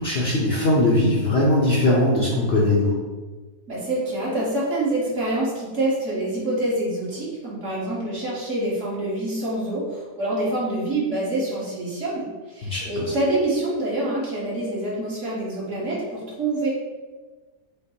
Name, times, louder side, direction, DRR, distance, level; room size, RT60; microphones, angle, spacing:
voice 1, 0.0-3.0 12.6-13.0, left 1 dB, 55° left, -5 dB, 0.8 m, -20 dB
voice 2, 3.7-16.7, right 1 dB, 55° right, -6 dB, 1.5 m, -26 dB
5.1 x 2.1 x 4.3 m, 1.3 s
omnidirectional pair, 1.6 m